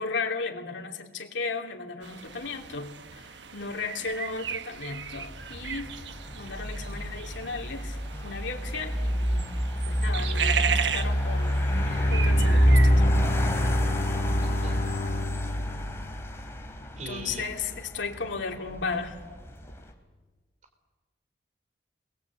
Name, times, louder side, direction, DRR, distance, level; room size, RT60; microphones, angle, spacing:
voice 1, 0.0-5.9 6.4-8.0 8.2-9.4 9.9-11.6 12.1-13.1 17.1-19.2, left 4 dB, 90° left, 3 dB, 3.0 m, -35 dB
sound 1, 2.0-13.0, right 7 dB, 75° right, 1.1 m, -35 dB
sound 2, 5.1-19.9, equal, 15° left, 2.9 m, -27 dB
Bowed string instrument, 11.7-16.9, left 3 dB, 45° left, 0.7 m, -33 dB
voice 2, 14.4-14.9 17.0-17.5, right 2 dB, 40° right, 6 dB, 3.4 m, -41 dB
29.0 x 21.5 x 8.4 m, 1.3 s
head